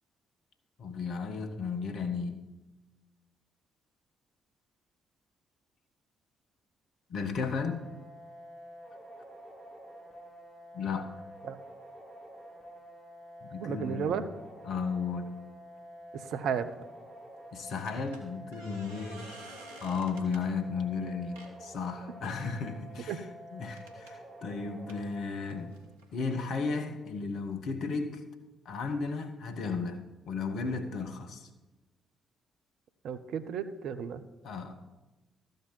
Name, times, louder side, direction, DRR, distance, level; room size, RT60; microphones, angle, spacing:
voice 1, 0.8-2.5 7.1-7.9 10.7-11.1 13.4-14.3 14.6-15.4 17.5-19.4 19.8-25.7 26.1-28.2 28.6-31.5 34.4-34.8, left 5 dB, 55° left, 7 dB, 1.2 m, -34 dB
sound 1, 7.6-25.6, equal, 5° right, 4.0 m, -49 dB
voice 2, 13.6-14.3 16.2-16.7 23.1-23.2 33.0-34.2, right 7 dB, 60° right, 10 dB, 0.6 m, -33 dB
sound 2, 16.6-16.8 17.9-20.5 21.4-21.6 22.2-22.7 23.7-24.1 24.9-26.4, right 2 dB, 80° right, 1.2 m, -52 dB
13.0 x 5.3 x 7.2 m, 1.1 s
figure-of-eight pair, 40°, 0 cm